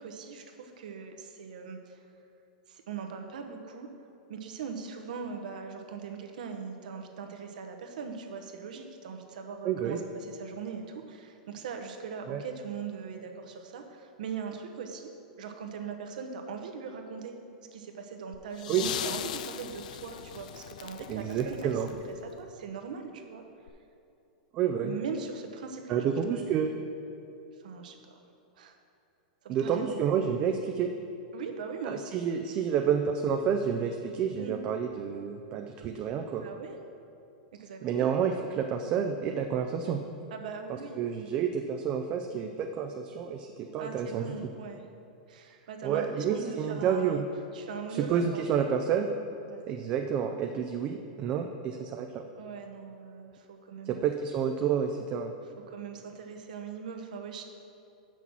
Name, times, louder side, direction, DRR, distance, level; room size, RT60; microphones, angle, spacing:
voice 1, 0.0-2.0 2.7-3.9 4.3-15.1 15.4-17.4 17.7-21.8 22.1-23.4 24.8-26.9 27.5-28.2 28.6-28.8 29.4-30.1 31.3-32.1 34.4-34.6 36.4-36.8 37.6-38.1 40.3-41.0 43.8-44.8 45.3-47.2 47.5-48.4 49.5-49.7 52.4-54.1 55.7-57.4, right 6 dB, 80° right, 4 dB, 1.0 m, -40 dB
voice 2, 9.6-10.0 12.3-12.4 18.7-18.8 21.1-21.9 24.5-24.9 25.9-26.7 29.5-30.9 31.8-36.5 37.8-40.0 41.0-44.2 45.8-47.2 47.9-49.1 49.7-52.2 53.9-55.3, right 7 dB, 30° right, 4 dB, 0.4 m, -29 dB
sound 1, 18.3-22.5 23.7-23.8, left 10 dB, 75° left, 0.3 m, -39 dB
7.1 x 6.0 x 6.0 m, 2.7 s
supercardioid pair, 160°, 4 cm